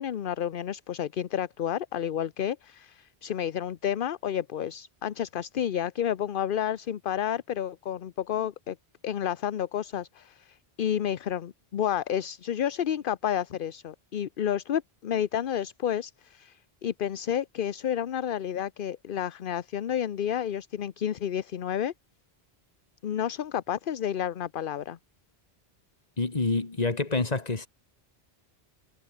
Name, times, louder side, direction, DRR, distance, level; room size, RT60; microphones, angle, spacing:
voice 1, 0.0-8.8 9.0-21.9 23.0-25.0, left 9 dB, 60° left, 0.9 m, -30 dB
voice 2, 26.2-27.7, left 3 dB, 40° left, 1.9 m, -27 dB
omnidirectional pair, 1.1 m